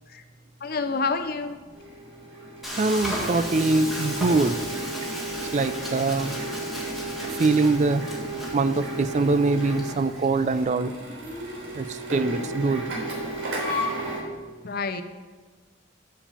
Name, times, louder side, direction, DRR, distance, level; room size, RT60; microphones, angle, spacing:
voice 1, 0.6-1.6 14.6-15.0, left 4 dB, 50° left, 9 dB, 0.7 m, -28 dB
Printer, 1.7-14.2, right 1 dB, 90° right, 3.4 m, -33 dB
Frying (food), 2.6-10.6, equal, ahead, 2.1 m, -36 dB
voice 2, 2.8-4.6 5.5-6.4 7.4-8.0 8.5-10.9 11.8-12.8, right 3 dB, 35° right, 12 dB, 0.4 m, -23 dB
7.4 x 7.3 x 6.8 m, 1.4 s
head